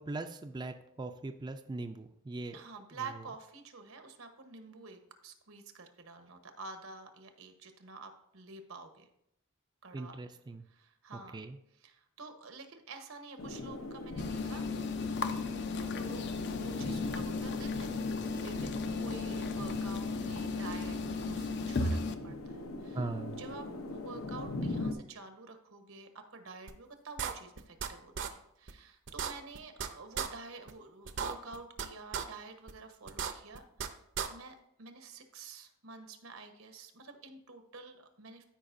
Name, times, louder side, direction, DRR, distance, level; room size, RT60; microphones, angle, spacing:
voice 1, 0.0-2.6 3.0-3.1 9.9-10.6 11.3-11.6 22.9-23.5, right 3 dB, 20° right, 7 dB, 0.3 m, -40 dB
voice 2, 2.5-9.1 9.8-10.2 10.7-11.4 11.8-14.6 15.8-16.2 16.6-17.9 18.3-23.0 23.3-33.9 34.3-38.4, right 4 dB, 85° right, 7 dB, 1.0 m, -49 dB
sound 1, 13.4-24.9, left 2 dB, 85° left, 0.7 m, -41 dB
sound 2, 14.2-22.1, left 3 dB, 55° left, 0.5 m, -35 dB
sound 3, 26.7-26.8 27.2-27.9 28.2-28.3 28.7-28.8 29.1-29.9 30.2-30.3 30.7-30.8 31.1-31.9 32.1-32.2 32.7-32.8 33.1-33.9 34.2-34.3, right 7 dB, 60° right, 0.6 m, -35 dB
13.5 x 5.1 x 2.6 m, 0.75 s
head